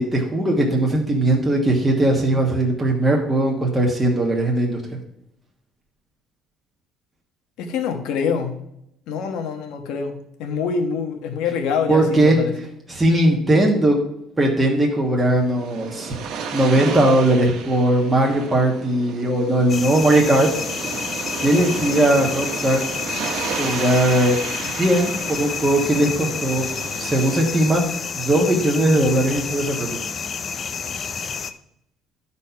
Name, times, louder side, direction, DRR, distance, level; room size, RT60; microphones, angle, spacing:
voice 1, 0.0-4.8 11.9-12.4 12.9-14.0 14.4-16.2 16.5-20.5 21.4-22.8 23.6-24.4 24.8-26.7 27.0-27.8 28.1-30.0, right 1 dB, 10° right, -1 dB, 1.3 m, -19 dB
voice 2, 7.6-8.6 9.1-12.5, left 6 dB, 80° left, 6 dB, 1.3 m, -25 dB
sound 1, 15.2-27.4, right 6 dB, 65° right, 1.2 m, -32 dB
sound 2, 19.7-31.5, left 6 dB, 30° left, 0.5 m, -29 dB
11.5 x 4.2 x 5.7 m, 0.77 s
cardioid pair, 160°, 0 cm